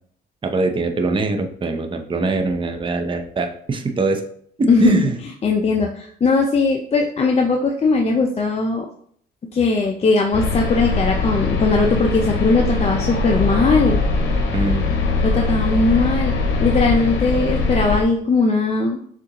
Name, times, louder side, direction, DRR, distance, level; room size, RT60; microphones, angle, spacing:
voice 1, 0.4-4.2 4.6-5.2 14.5-14.9, right 3 dB, 25° right, 5 dB, 0.6 m, -22 dB
voice 2, 4.7-5.1 5.4-8.9 9.5-14.0 15.2-19.0, left 3 dB, 30° left, 1 dB, 0.5 m, -19 dB
sound 1, 10.3-18.0, left 3 dB, 75° left, 0.8 m, -21 dB
6.5 x 2.5 x 2.9 m, 0.62 s
cardioid pair, 90°, 20 cm